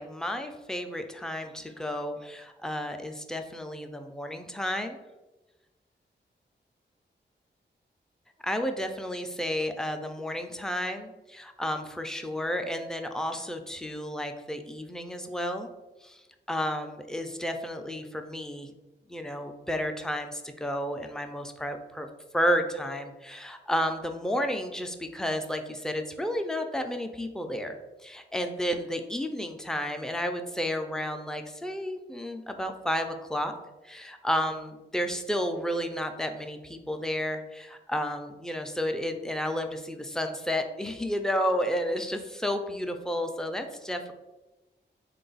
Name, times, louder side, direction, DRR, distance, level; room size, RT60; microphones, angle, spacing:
voice 1, 0.0-5.0 8.4-15.7 16.0-16.2 16.5-18.7 19.1-22.1 22.3-27.8 28.0-33.5 33.8-44.1, equal, 5° left, 5 dB, 0.4 m, -32 dB
3.4 x 2.3 x 3.9 m, 1.1 s
cardioid pair, 75°, 19 cm